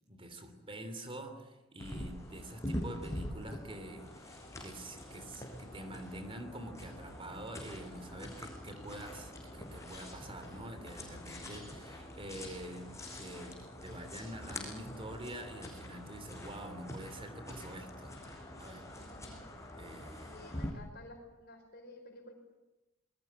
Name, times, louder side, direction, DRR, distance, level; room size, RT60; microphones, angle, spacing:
voice 1, 0.1-18.2 18.6-18.9 19.8-20.3, right 1 dB, 30° right, 8 dB, 3.1 m, -46 dB
sound 1, 1.8-20.7, left 1 dB, 15° left, 5.5 m, -45 dB
voice 2, 18.9-19.4 20.2-22.3, left 2 dB, 55° left, 4 dB, 5.2 m, -52 dB
27.5 x 21.0 x 8.6 m, 1.0 s
head